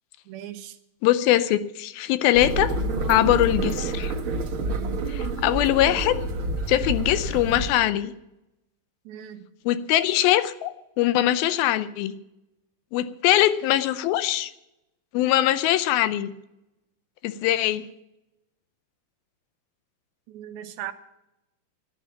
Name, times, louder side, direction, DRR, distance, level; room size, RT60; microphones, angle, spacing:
voice 1, 0.3-0.8 9.1-9.5 20.3-20.9, right 11 dB, 90° right, 8 dB, 2.9 m, -38 dB
voice 2, 1.0-2.7 3.1-4.1 5.1-6.2 6.7-8.1 9.7-12.1 12.9-14.5 15.1-16.3 17.2-17.8, left 13 dB, 85° left, 13 dB, 2.5 m, -22 dB
sound 1, 2.3-7.7, right 2 dB, 70° right, 1.2 m, -28 dB
11.5 x 9.5 x 7.2 m, 0.89 s
omnidirectional pair, 4.2 m